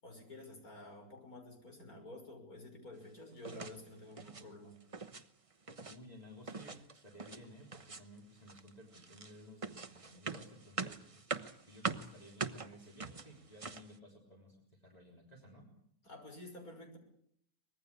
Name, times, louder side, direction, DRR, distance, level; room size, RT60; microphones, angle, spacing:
voice 1, 0.0-4.8 16.0-17.0, left 2 dB, 70° left, 4 dB, 6.4 m, -51 dB
sound 1, 3.4-3.8 4.1-4.5 4.8-5.2 5.5-6.0 6.5-7.4 7.7-8.2 8.5-13.9, right 4 dB, 25° right, 1.0 m, -43 dB
voice 2, 5.8-15.7, equal, 25° left, -1 dB, 3.8 m, -56 dB
24.5 x 20.5 x 8.4 m, 0.68 s
omnidirectional pair, 1.6 m